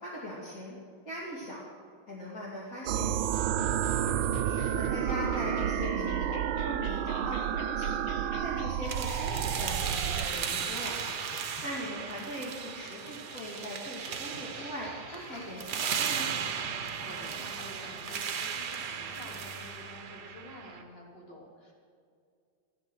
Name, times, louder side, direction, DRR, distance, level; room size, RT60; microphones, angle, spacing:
voice 1, 0.0-0.8 1.0-1.7 2.1-4.2 4.5-11.0 11.4-16.3, equal, 40° left, -6 dB, 2.9 m, -40 dB
sound 1, 2.9-10.3, right 10 dB, 75° right, 1.4 m, -30 dB
sound 2, 3.2-20.1, left 8 dB, 80° left, 1.7 m, -51 dB
voice 2, 4.2-4.8 16.7-21.7, equal, 25° left, -3 dB, 3.5 m, -49 dB
sound 3, 8.9-20.8, right 7 dB, 60° right, 1.4 m, -36 dB
14.5 x 13.0 x 6.4 m, 2.3 s
omnidirectional pair, 2.3 m